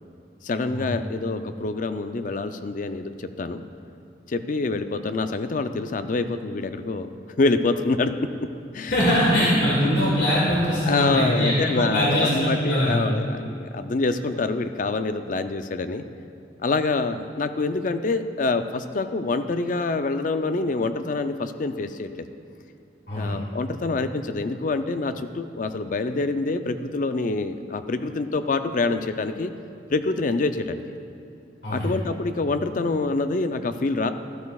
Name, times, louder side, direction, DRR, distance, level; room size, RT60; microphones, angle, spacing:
voice 1, 0.4-3.6 4.3-7.1 7.4-8.3 8.7-9.1 10.8-16.0 16.6-22.3 23.1-29.5 29.9-30.8 31.7-34.1, left 3 dB, 45° left, 9 dB, 0.4 m, -26 dB
voice 2, 8.9-13.0 23.1-23.3 31.6-31.9, equal, 65° left, -7 dB, 2.2 m, -22 dB
13.0 x 12.5 x 2.3 m, 2.6 s
head